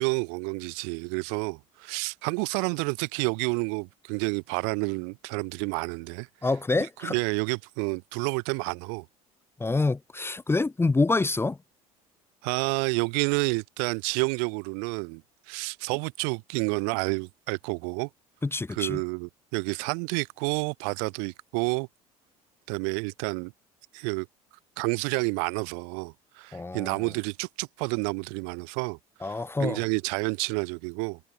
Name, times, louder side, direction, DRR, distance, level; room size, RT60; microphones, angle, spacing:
voice 1, 0.0-6.3 7.0-9.0 12.4-15.2 15.5-18.1 18.7-21.9 22.7-23.5 23.9-24.3 24.8-29.0 29.2-31.2, right 40 dB or more, 55° right, 0.7 m, -29 dB
voice 2, 6.4-7.1 9.6-11.6 18.4-19.0 26.5-26.9 29.2-29.8, left 3 dB, 15° left, 1.0 m, -26 dB
figure-of-eight pair, 65°, 18 cm